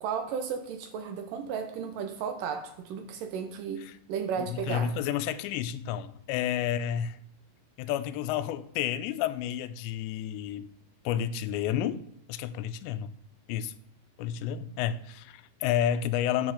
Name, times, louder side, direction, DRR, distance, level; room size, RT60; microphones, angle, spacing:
voice 1, 0.0-3.8 4.1-4.9, right 7 dB, 90° right, 1.9 m, -34 dB
voice 2, 4.4-7.2 7.8-10.7 11.1-12.0 12.3-13.1 13.5-13.7 14.2-16.5, left 10 dB, 90° left, 2.8 m, -30 dB
9.7 x 6.1 x 4.9 m
omnidirectional pair, 4.9 m